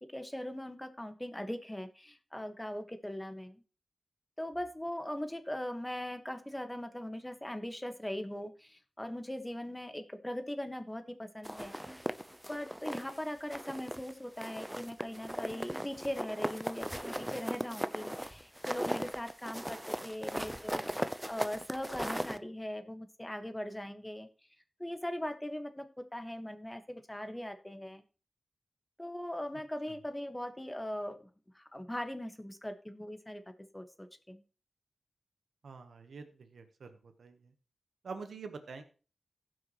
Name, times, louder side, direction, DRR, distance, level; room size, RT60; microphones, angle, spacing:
voice 1, 0.1-3.6 4.4-11.7 12.5-24.3 24.8-28.0 29.0-31.2 31.5-33.4 33.7-34.4, left 1 dB, 15° left, 8 dB, 1.5 m, -40 dB
sound 1, 11.4-13.2 13.5-14.1 14.4-22.4, equal, 10° right, 0.7 m, -38 dB
voice 2, 35.6-37.5 38.0-38.8, right 4 dB, 90° right, 7 dB, 1.1 m, -46 dB
16.0 x 6.1 x 3.1 m, 0.35 s
cardioid pair, 45°, 0 cm